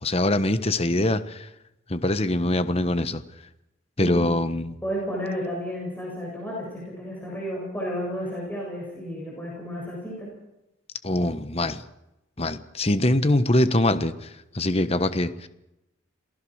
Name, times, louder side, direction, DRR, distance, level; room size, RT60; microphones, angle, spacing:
voice 1, 0.0-1.5 1.9-3.2 4.0-4.7 11.0-11.8 12.4-15.5, left 1 dB, 30° left, 11 dB, 1.2 m, -23 dB
voice 2, 4.0-4.4 4.8-10.3, equal, 10° left, -4 dB, 7.6 m, -32 dB
28.0 x 18.5 x 6.4 m, 0.91 s
head